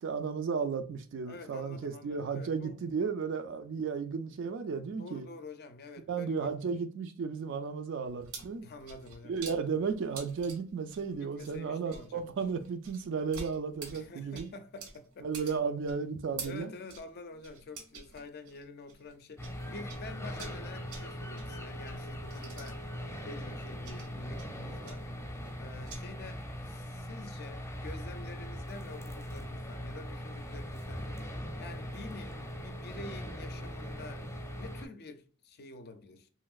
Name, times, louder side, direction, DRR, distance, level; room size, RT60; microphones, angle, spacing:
voice 1, 0.0-5.3 6.1-8.7 9.2-14.5 15.2-16.7, right 5 dB, 55° right, 0.3 m, -34 dB
voice 2, 1.3-2.8 5.0-6.5 8.6-9.3 11.2-12.2 13.9-15.3 16.4-22.8 23.2-25.0 25.6-31.1 31.6-34.3 34.6-36.3, left 3 dB, 45° left, 0.5 m, -48 dB
sound 1, 8.0-19.6 19.9-26.0, right 4 dB, 85° right, 0.8 m, -49 dB
sound 2, 19.4-34.9, equal, 15° left, 0.7 m, -40 dB
3.0 x 2.7 x 2.3 m
head